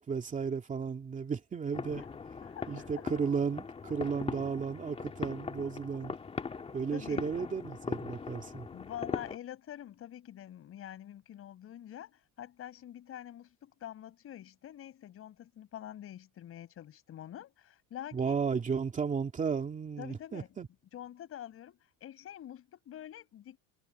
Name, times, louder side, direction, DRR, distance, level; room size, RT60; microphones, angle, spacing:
voice 1, 0.0-2.0 2.7-6.1 6.7-8.7 18.1-20.7, right 6 dB, 20° right, 2.4 m, -34 dB
sound 1, 1.7-9.4, left 5 dB, 15° left, 2.1 m, -40 dB
voice 2, 2.4-2.9 3.9-4.1 6.9-7.3 8.6-18.4 20.0-20.5 20.9-23.6, left 11 dB, 35° left, 5.3 m, -46 dB
cardioid pair, 175°, 38 cm